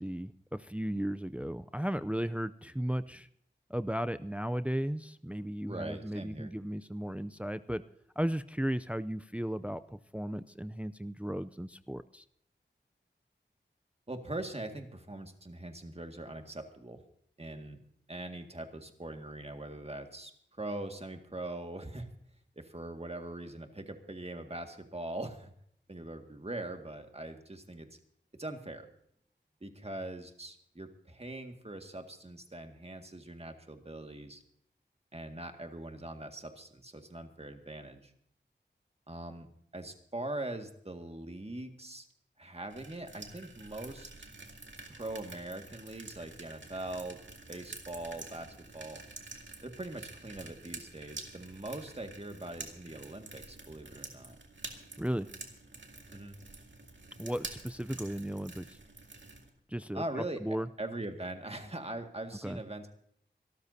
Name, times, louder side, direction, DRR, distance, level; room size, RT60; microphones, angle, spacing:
voice 1, 0.0-3.3 3.7-7.8 8.2-12.2 55.0-55.3 57.2-58.8 59.7-60.0 60.4-60.7 62.4-62.6, equal, 5° right, 13 dB, 0.5 m, -35 dB
voice 2, 5.7-6.5 14.1-17.0 17.4-17.8 18.1-22.1 22.6-25.5 25.9-27.9 28.3-28.9 29.6-34.4 35.1-38.1 39.1-39.5 39.7-42.1 42.4-44.1 44.9-47.2 47.5-49.0 49.6-54.4 56.1-56.4 59.9-60.4 60.8-62.9, right 1 dB, 35° right, 5 dB, 2.0 m, -42 dB
sound 1, 42.7-59.5, right 3 dB, 80° right, 2.1 m, -48 dB
26.0 x 13.0 x 2.8 m, 0.68 s
wide cardioid pair, 50°, 19 cm